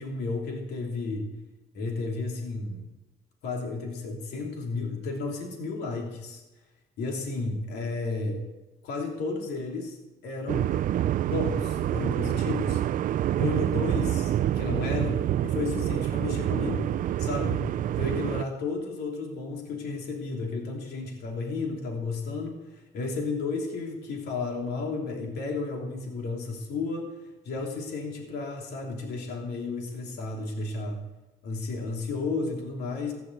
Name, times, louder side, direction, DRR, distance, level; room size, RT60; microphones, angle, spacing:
voice 1, 0.0-1.3 1.7-2.9 3.4-6.4 7.0-8.4 8.8-10.0 10.2-10.8 11.3-12.8 13.4-16.9 17.2-17.6 18.0-27.2 27.4-31.0 31.4-33.1, left 3 dB, 75° left, 1 dB, 3.1 m, -32 dB
sound 1, 10.5-18.4, right 12 dB, 55° right, 0.5 m, -27 dB
15.5 x 10.5 x 7.9 m, 1.1 s
cardioid pair, 110°, 17 cm